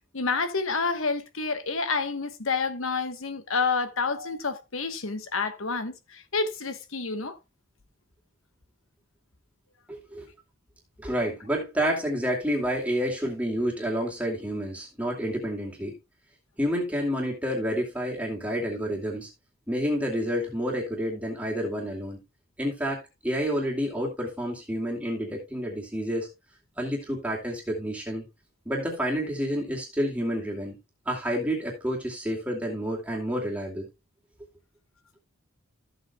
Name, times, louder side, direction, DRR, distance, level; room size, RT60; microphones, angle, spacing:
voice 1, 0.1-7.4, left 4 dB, 70° left, 1.2 m, -29 dB
voice 2, 9.9-10.3 11.0-15.9 16.6-19.3 19.7-22.2 22.6-26.3 26.8-28.2 28.7-30.8 31.1-33.9, equal, 5° right, 2.4 m, -29 dB
14.0 x 7.9 x 2.3 m
head